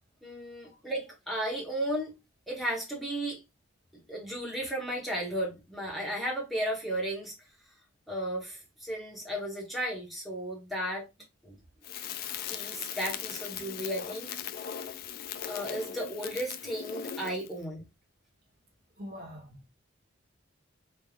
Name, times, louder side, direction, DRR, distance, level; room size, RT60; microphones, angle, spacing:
voice 1, 0.2-2.1 2.5-3.4 4.1-7.3 8.1-11.1 11.4-11.6 12.5-14.3 15.5-17.8, right 1 dB, ahead, 1.1 m, -34 dB
Crackle, 11.8-17.5, left 8 dB, 50° left, 0.4 m, -39 dB
voice 2, 19.0-19.7, equal, 50° right, 1.2 m, -44 dB
4.2 x 3.4 x 2.4 m
head